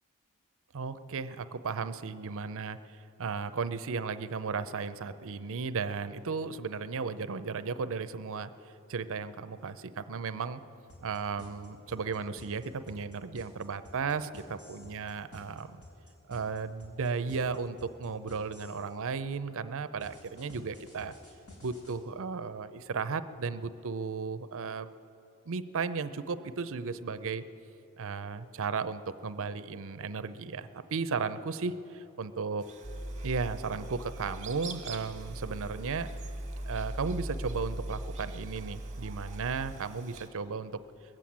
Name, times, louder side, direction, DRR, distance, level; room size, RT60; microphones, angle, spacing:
voice 1, 0.7-10.6 11.0-15.8 16.3-21.1 21.6-24.9 25.5-27.4 28.0-32.6 33.2-36.1 36.7-40.8, right 5 dB, 65° right, 12 dB, 0.6 m, -35 dB
sound 1, 10.9-18.9 20.0-21.9, left 1 dB, 70° left, 4.4 m, -52 dB
sound 2, 32.6-40.3, right 6 dB, 30° right, 1.6 m, -50 dB
sound 3, 32.8-39.8, right 1 dB, 20° left, 2.0 m, -40 dB
21.0 x 7.7 x 8.6 m, 2.8 s
head